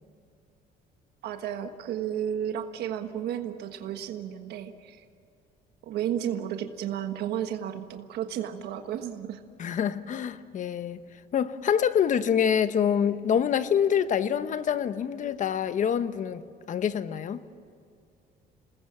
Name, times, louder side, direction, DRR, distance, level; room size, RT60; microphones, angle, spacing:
voice 1, 1.2-5.0 5.8-9.4, right 10 dB, 75° right, 1.4 m, -33 dB
voice 2, 9.6-11.0 11.3-16.4 16.7-17.4, left 8 dB, 50° left, 1.1 m, -26 dB
28.5 x 20.0 x 7.3 m
cardioid pair, 110°, 17 cm